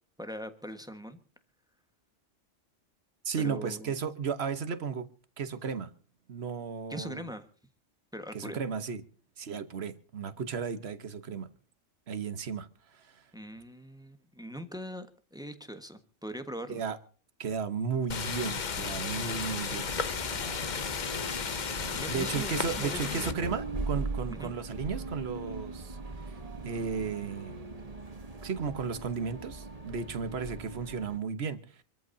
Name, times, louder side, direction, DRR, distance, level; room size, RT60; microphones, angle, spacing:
voice 1, 0.2-1.2 3.4-3.9 6.9-7.5 8.1-8.6 13.3-16.8 22.0-23.3 24.3-24.5, equal, 5° right, 1.4 m, -41 dB
voice 2, 3.2-5.1 5.4-5.9 6.3-7.3 8.3-9.0 9.4-11.5 12.1-13.2 16.7-17.0 17.4-19.9 22.1-26.4 26.6-27.7 28.4-31.8, right 6 dB, 60° right, 1.4 m, -34 dB
sound 1, 18.1-23.3, left 6 dB, 40° left, 0.9 m, -34 dB
sound 2, 19.9-31.2, right 3 dB, 30° right, 1.4 m, -40 dB
26.0 x 14.0 x 2.7 m
omnidirectional pair, 1.3 m